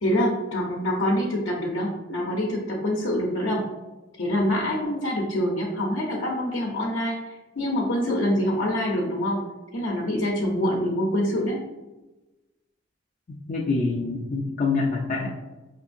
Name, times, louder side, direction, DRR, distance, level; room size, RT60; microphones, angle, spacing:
voice 1, 0.0-3.6 4.2-7.2 7.6-9.4 9.7-11.6, left 1 dB, 70° left, -3 dB, 0.7 m, -25 dB
voice 2, 13.3-15.3, left 3 dB, 40° left, -1 dB, 0.4 m, -26 dB
5.3 x 2.6 x 2.6 m, 1.1 s
head